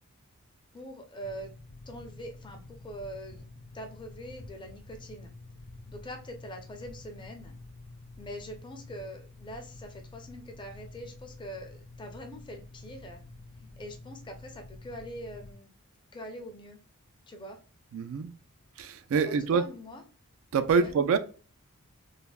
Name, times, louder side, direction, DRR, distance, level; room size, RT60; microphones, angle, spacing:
voice 1, 0.7-1.5 1.9-3.5 3.7-5.3 5.9-7.6 8.2-13.2 13.8-15.7 16.1-16.8 17.3-17.6 19.2-20.0 20.7-21.2, equal, 20° left, 0.5 m, -43 dB
sound 1, 1.2-15.5, left 2 dB, 60° left, 0.6 m, -49 dB
voice 2, 17.9-18.3 18.8-19.6 20.5-21.2, right 5 dB, 60° right, 0.3 m, -25 dB
3.3 x 2.0 x 2.3 m
head